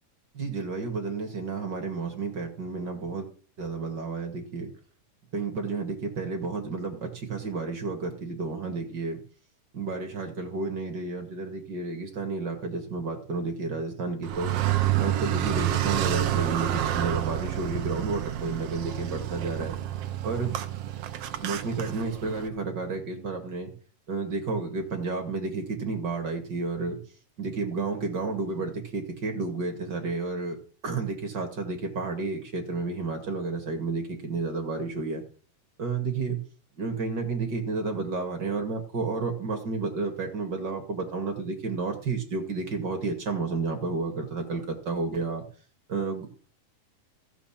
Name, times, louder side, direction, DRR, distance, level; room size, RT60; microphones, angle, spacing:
voice 1, 0.3-3.3 3.6-4.7 5.3-9.2 9.7-14.5 15.0-19.7 20.2-20.6 21.4-23.7 24.1-27.0 27.4-30.6 30.8-35.2 35.8-36.4 36.8-45.4 45.9-46.3, right 3 dB, 35° right, 3 dB, 2.3 m, -31 dB
Car, 14.2-22.5, right 12 dB, 80° right, 1.3 m, -29 dB
14.0 x 6.8 x 7.4 m, 0.41 s
omnidirectional pair, 4.0 m